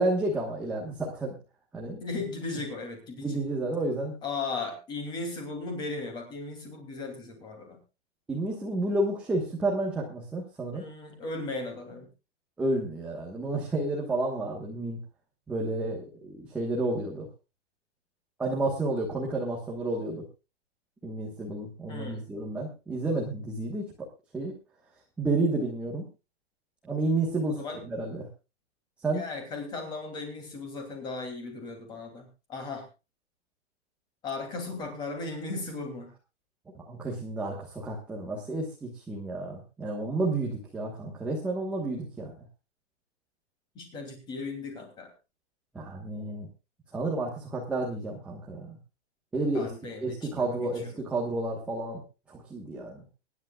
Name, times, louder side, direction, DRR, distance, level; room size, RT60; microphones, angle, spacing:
voice 1, 0.0-1.3 1.7-2.0 3.2-4.1 8.3-10.8 12.6-15.0 15.5-17.3 18.4-20.2 21.0-24.1 24.3-24.5 25.2-26.0 26.9-28.3 29.0-29.2 36.7-42.3 45.7-46.5 46.9-48.8 49.3-49.7 50.0-52.0 52.3-53.0, right 2 dB, 5° right, -3 dB, 1.3 m, -31 dB
voice 2, 2.0-3.4 4.2-7.8 10.7-12.1 21.9-22.2 27.5-27.8 29.1-32.8 34.2-36.1 43.7-45.1 49.5-51.0, left 3 dB, 10° left, 4 dB, 2.8 m, -37 dB
24.5 x 10.5 x 2.3 m, 0.29 s
hypercardioid pair, 180°, 36 cm